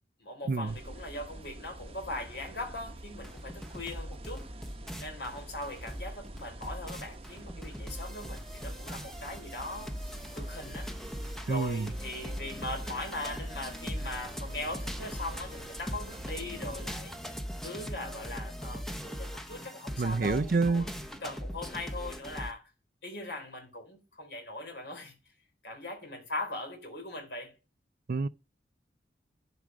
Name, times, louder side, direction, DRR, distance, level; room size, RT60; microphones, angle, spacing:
voice 1, 0.2-4.5 5.0-10.9 11.4-20.9 21.2-22.6 23.0-25.1 25.6-27.5, left 2 dB, 70° left, 3.8 m, -40 dB
sound 1, 0.7-16.9, right 1 dB, 30° right, 0.9 m, -46 dB
sound 2, 3.2-22.5, equal, ahead, 0.9 m, -40 dB
voice 2, 11.5-11.9 20.0-20.9 28.1-28.3, right 4 dB, 55° right, 0.4 m, -28 dB
11.0 x 5.2 x 6.2 m
head